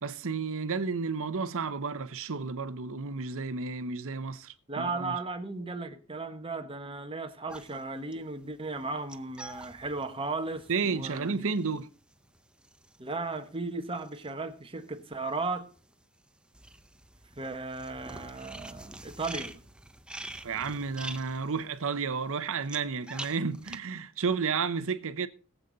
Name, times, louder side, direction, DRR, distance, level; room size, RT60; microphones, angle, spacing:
voice 1, 0.0-5.2 10.7-11.9 20.4-25.3, right 5 dB, 65° right, 0.8 m, -32 dB
voice 2, 4.7-11.4 13.0-15.7 17.4-19.5, right 3 dB, 25° right, 1.3 m, -36 dB
sound 1, 7.5-15.0 15.3-23.8, right 1 dB, 5° right, 0.7 m, -46 dB
19.5 x 8.1 x 4.0 m
head